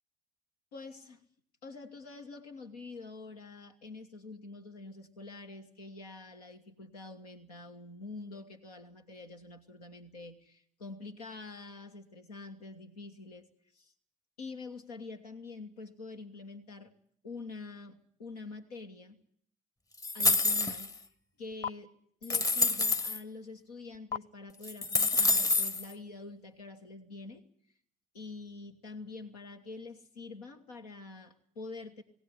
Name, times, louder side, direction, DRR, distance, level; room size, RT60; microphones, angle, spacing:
voice 1, 0.7-1.2 1.6-13.5 13.7-13.9 14.4-16.9 17.2-19.2 20.1-20.9 21.4-21.9 22.2-27.4 28.1-32.0, left 3 dB, 90° left, 4 dB, 1.4 m, -46 dB
sound 1, 20.0-21.0 21.6-21.7 22.2-23.2 24.1-24.2 24.6-25.8, left 3 dB, 20° left, 0.9 m, -27 dB
19.5 x 18.0 x 9.7 m, 0.64 s
hypercardioid pair, 45°, 19 cm